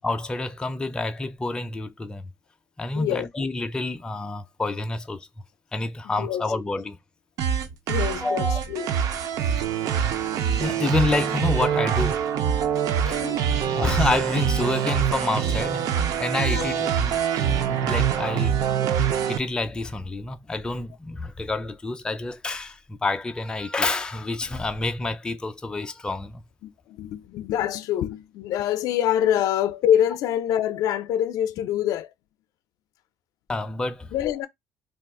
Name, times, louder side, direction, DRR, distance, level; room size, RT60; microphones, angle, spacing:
voice 1, 0.0-2.3 2.8-5.3 5.7-7.0 8.2-8.6 10.6-12.2 13.1-13.2 13.7-15.9 16.2-18.5 19.0-26.4 33.5-34.1, left 2 dB, 15° left, 0.4 m, -28 dB
voice 2, 2.9-3.3 6.1-6.5 7.9-8.9 13.0-13.5 16.5-16.7 26.6-32.1 34.1-34.5, left 10 dB, 75° left, 0.4 m, -25 dB
sound 1, 7.4-19.4, right 8 dB, 65° right, 0.5 m, -24 dB
2.5 x 2.3 x 3.6 m
cardioid pair, 115°, 6 cm